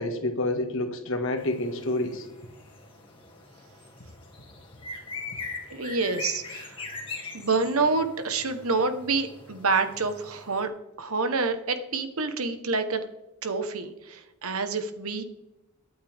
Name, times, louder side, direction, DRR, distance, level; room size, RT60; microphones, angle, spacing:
voice 1, 0.0-2.3, left 1 dB, 60° left, 5 dB, 1.9 m, -28 dB
sound 1, 1.4-10.6, left 3 dB, 25° left, 2.1 m, -42 dB
voice 2, 5.7-6.8 7.3-10.7 11.0-13.0 13.4-15.2, right 4 dB, 75° right, 9 dB, 1.3 m, -27 dB
22.5 x 8.6 x 3.6 m, 1.0 s
head